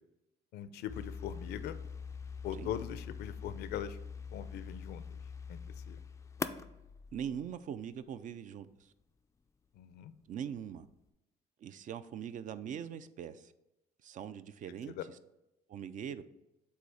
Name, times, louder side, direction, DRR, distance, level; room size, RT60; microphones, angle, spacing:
voice 1, 0.5-1.8 2.4-4.0 4.3-5.2 5.5-5.6 5.9-6.0 9.8-10.1 14.9-15.0, left 10 dB, 75° left, 13 dB, 0.5 m, -41 dB
sound 1, 0.9-7.9, left 5 dB, 15° left, 0.3 m, -43 dB
voice 2, 7.1-8.9 10.3-10.9 11.6-13.5 14.0-14.9 15.7-16.2, right 8 dB, 50° right, 13 dB, 0.4 m, -42 dB
8.1 x 2.8 x 4.7 m, 0.93 s
cardioid pair, 110°, 17 cm